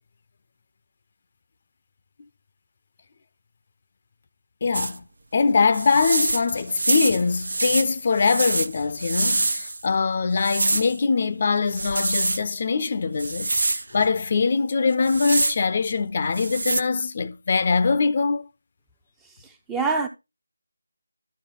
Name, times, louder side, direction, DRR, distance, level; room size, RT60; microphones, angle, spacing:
voice 1, 4.6-5.0 5.3-18.5, left 4 dB, 35° left, 0.5 m, -23 dB
sound 1, 4.7-5.0 5.7-9.9 10.4-11.0 11.7-12.4 13.2-13.8 14.9-15.6 16.3-16.8, right 2 dB, 65° right, 0.6 m, -25 dB
voice 2, 19.2-20.1, right 4 dB, 5° right, 0.6 m, -26 dB
12.5 x 4.3 x 3.7 m
figure-of-eight pair, 165°, 0 cm